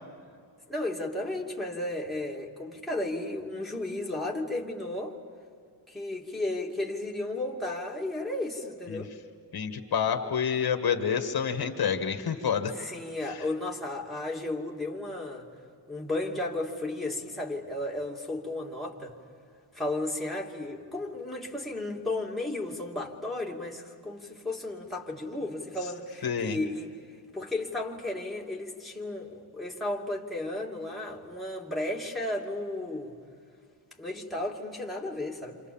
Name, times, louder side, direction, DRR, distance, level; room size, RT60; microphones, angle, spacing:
voice 1, 0.7-5.1 5.9-9.1 12.7-15.5 15.9-19.1 19.7-26.9 27.3-33.1 34.0-35.6, left 2 dB, ahead, -3 dB, 2.8 m, -34 dB
voice 2, 9.5-12.7 13.3-13.4 26.2-26.6, left 7 dB, 55° left, 6 dB, 1.8 m, -28 dB
29.5 x 27.5 x 7.3 m, 2.3 s
wide cardioid pair, 150°, 43 cm